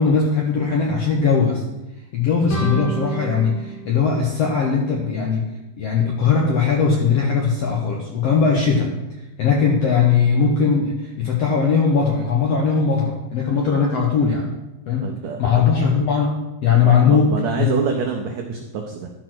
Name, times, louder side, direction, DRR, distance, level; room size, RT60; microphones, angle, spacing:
voice 1, 0.0-1.6 2.1-5.5 5.8-8.9 9.4-14.5 14.9-15.1 15.4-16.3 16.6-17.8, left 5 dB, 70° left, -1 dB, 1.5 m, -19 dB
sound 1, 2.5-5.2, right 1 dB, 45° left, 2.2 m, -30 dB
voice 2, 15.0-15.6 16.8-19.1, right 6 dB, 80° right, 1 dB, 1.6 m, -26 dB
12.0 x 4.7 x 6.0 m, 1.0 s
omnidirectional pair, 4.1 m